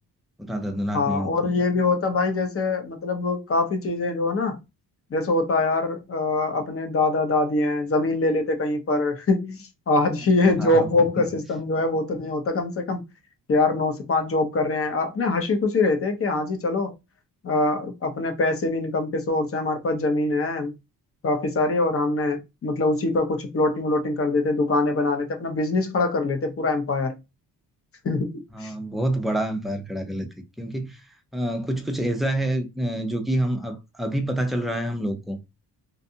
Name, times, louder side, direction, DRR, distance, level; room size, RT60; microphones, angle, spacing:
voice 1, 0.4-1.4 10.4-10.9 11.2-11.3 28.5-30.3 30.6-35.4, right 1 dB, ahead, 0.4 m, -27 dB
voice 2, 0.9-4.6 5.1-13.0 13.5-16.9 17.4-20.7 21.2-27.1 28.0-28.3 28.6-28.7, left 2 dB, 35° left, 0.6 m, -23 dB
2.6 x 2.2 x 2.7 m
cardioid pair, 120°, 38 cm